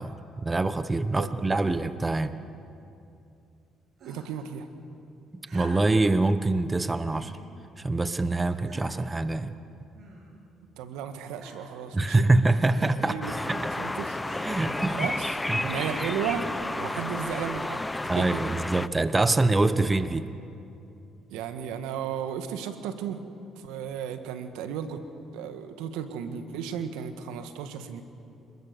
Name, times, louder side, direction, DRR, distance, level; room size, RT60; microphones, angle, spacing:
voice 1, 0.0-2.4 5.5-7.3 7.8-9.5 11.9-13.6 14.4-15.1 15.5-15.7 18.1-20.3, right 2 dB, 20° right, 11 dB, 1.1 m, -25 dB
voice 2, 1.2-1.6 4.0-4.7 10.8-12.3 13.0-14.2 14.6-18.4 21.3-23.2 23.5-25.0 25.3-28.0, right 8 dB, 85° right, 8 dB, 1.6 m, -35 dB
sound 1, 4.0-4.5 5.4-6.1 7.1-7.4 8.1-8.2 8.7-9.1 9.9-10.5 11.4-11.8 12.7-13.0 14.2-14.5 15.8-16.3 17.3-17.4, right 2 dB, 60° right, 7.5 m, -47 dB
sound 2, 13.2-18.9, left 2 dB, 15° left, 0.6 m, -31 dB
28.0 x 21.0 x 6.9 m, 2.6 s
supercardioid pair, 75°, 0 cm